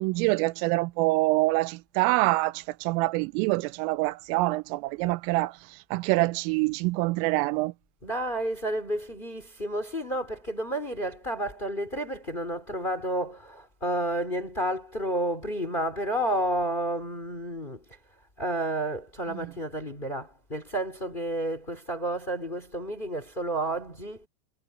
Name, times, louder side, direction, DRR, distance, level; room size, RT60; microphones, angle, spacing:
voice 1, 0.0-5.5 5.9-7.7 19.4-19.5, right 21 dB, 85° right, 3.2 m, -25 dB
voice 2, 8.0-17.8 18.4-24.3, right 1 dB, 15° left, 2.5 m, -31 dB
omnidirectional pair, 5.8 m